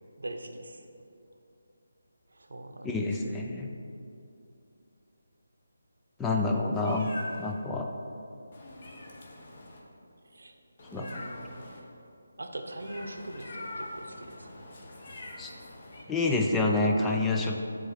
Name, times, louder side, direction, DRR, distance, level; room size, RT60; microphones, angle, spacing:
voice 1, 0.2-0.9 2.3-2.9 10.3-10.5 10.9-11.5 12.4-14.6 16.3-17.2, right 1 dB, 80° right, 5 dB, 0.8 m, -42 dB
voice 2, 2.8-3.7 6.2-7.1 7.4-7.9 10.9-11.3 15.4-15.5 16.1-17.6, left 2 dB, 10° left, 1 dB, 0.4 m, -28 dB
Meow, 6.7-7.5 8.5-9.8 10.8-11.8 12.8-16.0, left 1 dB, 40° left, 1.0 m, -43 dB
7.4 x 3.8 x 5.6 m, 2.6 s
figure-of-eight pair, 165°, 0 cm